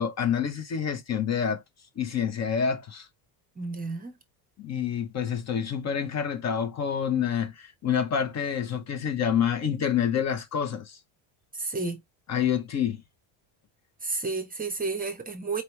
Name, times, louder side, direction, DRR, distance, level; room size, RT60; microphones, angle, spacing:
voice 1, 0.0-1.6 2.0-3.1 4.6-11.0 12.3-13.0, left 8 dB, 35° left, 0.6 m, -27 dB
voice 2, 3.6-4.2 11.5-12.0 14.0-15.6, right 3 dB, 20° right, 0.7 m, -31 dB
4.6 x 2.9 x 3.0 m
cardioid pair, 145°, 48 cm